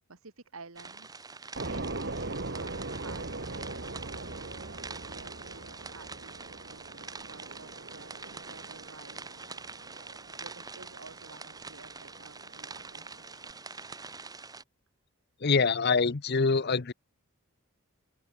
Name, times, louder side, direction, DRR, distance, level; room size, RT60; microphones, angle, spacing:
voice 1, 0.1-14.0 16.3-16.6, right 4 dB, 70° right, 1.8 m, -53 dB
sound 1, 0.8-14.6, right 4 dB, 15° right, 1.7 m, -45 dB
sound 2, 1.5-13.5, right 2 dB, 50° right, 1.7 m, -41 dB
voice 2, 15.4-16.9, left 4 dB, 50° left, 0.8 m, -25 dB
open air
head